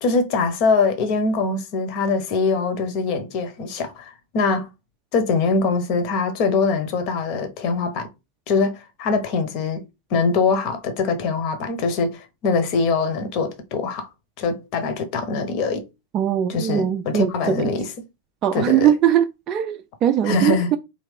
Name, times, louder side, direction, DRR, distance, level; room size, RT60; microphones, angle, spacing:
voice 1, 0.0-4.7 5.1-8.1 8.5-9.8 10.1-14.1 14.4-15.9 16.5-17.9 18.5-18.9 20.2-20.8, left 4 dB, 45° left, 1.0 m, -23 dB
voice 2, 16.1-17.3 17.6-17.7 18.4-20.8, right 10 dB, 30° right, 0.4 m, -20 dB
4.2 x 3.2 x 3.3 m
figure-of-eight pair, 90°, 0 cm